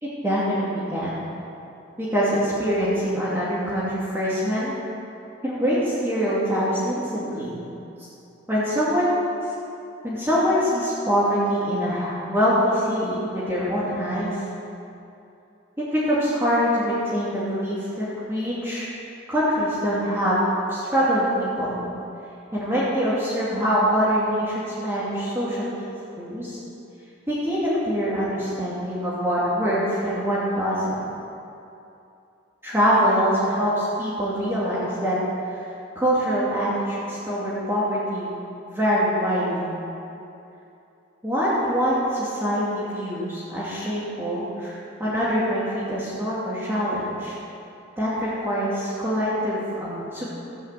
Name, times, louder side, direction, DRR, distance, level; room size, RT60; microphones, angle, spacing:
voice 1, 0.2-1.2 2.0-4.7 5.4-7.6 8.5-9.2 10.0-14.4 15.9-18.9 19.3-20.4 20.7-21.8 22.5-25.7 26.2-26.6 27.3-31.0 32.6-35.1 36.0-38.3 38.7-39.8 41.2-47.4 48.0-50.4, equal, 10° right, -10 dB, 2.6 m, -24 dB
13.5 x 9.7 x 7.6 m, 2.8 s
head